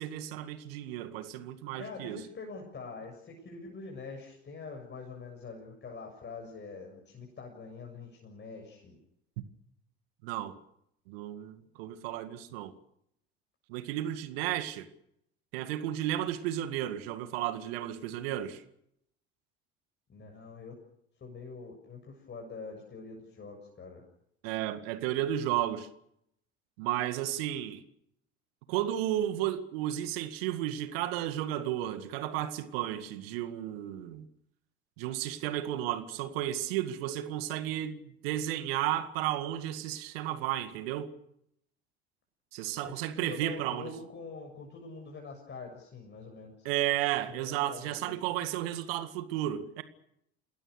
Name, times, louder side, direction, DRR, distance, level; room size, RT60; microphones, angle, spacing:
voice 1, 0.0-2.2 10.2-10.6 11.1-12.7 13.7-14.9 15.5-18.6 24.4-25.9 26.8-27.8 28.7-34.3 35.0-41.1 42.5-43.9 46.6-49.8, right 12 dB, 70° right, 2.0 m, -33 dB
voice 2, 1.7-9.0 20.1-20.7 21.2-24.0 43.1-46.7 47.3-48.2, left 4 dB, 35° left, 7.1 m, -45 dB
28.0 x 20.0 x 6.6 m
figure-of-eight pair, 65°, 31 cm